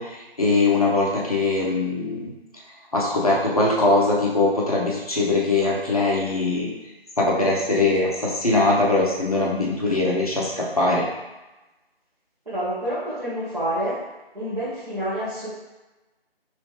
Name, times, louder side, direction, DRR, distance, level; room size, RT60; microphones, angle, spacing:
voice 1, 0.0-2.3 2.9-6.7 7.2-11.0, left 2 dB, 35° left, -4 dB, 0.7 m, -21 dB
voice 2, 12.5-14.0 14.3-15.5, right 1 dB, 40° right, -13 dB, 1.2 m, -28 dB
3.1 x 3.0 x 3.3 m, 1.1 s
figure-of-eight pair, 160°, 31 cm